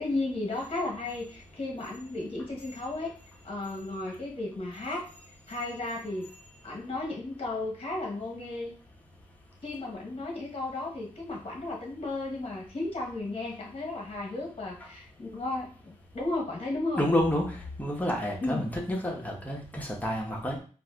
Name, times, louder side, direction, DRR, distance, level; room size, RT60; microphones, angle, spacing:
voice 1, 0.0-3.1 3.4-5.1 5.5-6.3 6.6-8.7 9.6-17.1 18.4-18.7, left 2 dB, 45° left, -1 dB, 0.9 m, -34 dB
voice 2, 17.0-20.6, left 1 dB, 10° left, -2 dB, 1.0 m, -29 dB
4.5 x 2.5 x 2.3 m, 0.39 s
wide cardioid pair, 75°, 14 cm